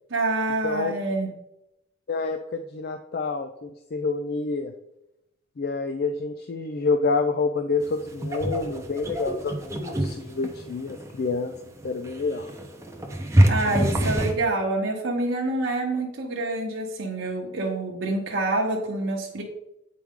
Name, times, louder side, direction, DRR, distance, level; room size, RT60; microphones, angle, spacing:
voice 1, 0.1-1.3 13.5-19.4, right 2 dB, 65° right, -1 dB, 0.9 m, -27 dB
voice 2, 2.1-4.7 5.6-11.5 11.8-12.5, left 4 dB, 50° left, 8 dB, 0.4 m, -28 dB
sound 1, 7.8-14.4, right 1 dB, 15° right, 0.6 m, -26 dB
8.5 x 4.6 x 3.6 m, 0.87 s
head